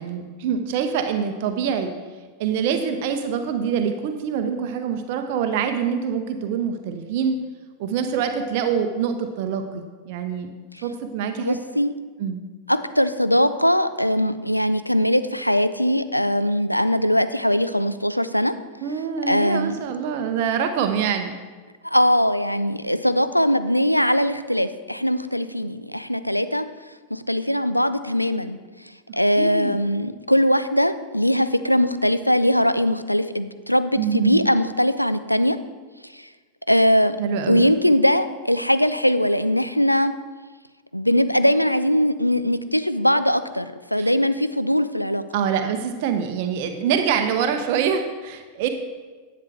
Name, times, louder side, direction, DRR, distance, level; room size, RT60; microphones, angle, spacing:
voice 1, 0.0-1.9 2.4-7.4 7.8-10.5 10.8-11.6 12.2-12.4 18.8-21.3 29.4-29.8 34.0-34.5 37.2-37.7 44.0-44.1 45.3-48.7, right 7 dB, 50° right, 7 dB, 0.7 m, -25 dB
voice 2, 11.4-11.9 12.7-18.5 19.3-19.7 21.8-26.6 27.1-28.6 29.1-35.6 36.1-36.3 36.7-37.2 37.5-40.1 40.9-45.2, equal, 90° left, 12 dB, 0.4 m, -21 dB
10.5 x 7.7 x 3.3 m, 1.4 s
figure-of-eight pair, 90°, 0 cm